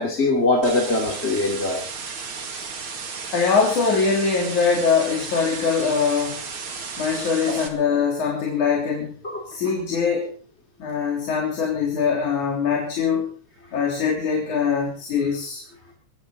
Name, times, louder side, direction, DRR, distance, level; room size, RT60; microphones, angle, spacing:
voice 1, 0.0-1.8 7.5-7.6 9.2-9.4 9.6-9.7, left 2 dB, 20° left, 1 dB, 2.6 m, -22 dB
sound 1, 0.6-7.7, right 5 dB, 45° right, 2.9 m, -34 dB
voice 2, 3.3-6.4 7.0-9.2 9.5-10.3 10.8-13.3 13.7-15.6, left 5 dB, 80° left, -1 dB, 4.8 m, -22 dB
23.0 x 15.5 x 3.9 m, 0.41 s
omnidirectional pair, 3.4 m